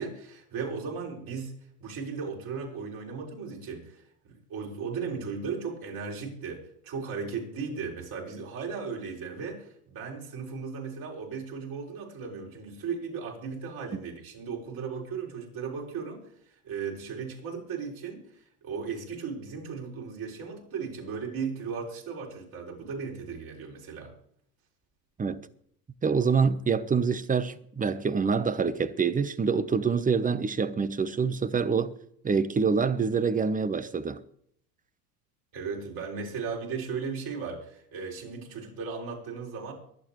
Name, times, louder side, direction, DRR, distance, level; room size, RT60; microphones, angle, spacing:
voice 1, 0.0-1.5 1.8-16.2 16.6-24.1 35.5-39.7, right 5 dB, 50° right, 6.2 m, -36 dB
voice 2, 26.0-31.9 32.2-34.2, right 5 dB, 20° right, 1.0 m, -26 dB
23.5 x 8.7 x 3.2 m
hypercardioid pair, 85°, 45 cm